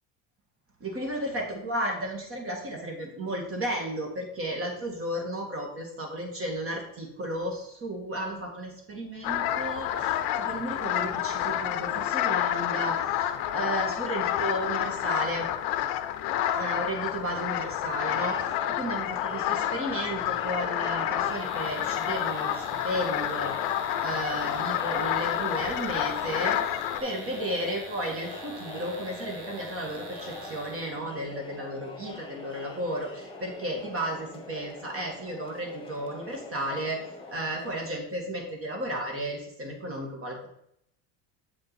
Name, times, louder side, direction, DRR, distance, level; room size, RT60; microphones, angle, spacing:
voice 1, 0.8-15.5 16.6-26.6 27.0-37.0 37.3-40.5, right 1 dB, 35° right, 1 dB, 1.9 m, -34 dB
sound 1, 9.2-27.0, left 11 dB, 70° left, 0.8 m, -29 dB
Crowd, 17.9-37.8, left 2 dB, 15° left, 1.3 m, -43 dB
sound 2, 21.1-31.0, right 2 dB, 75° right, 1.7 m, -46 dB
7.5 x 5.2 x 4.1 m, 0.74 s
supercardioid pair, 105°, 38 cm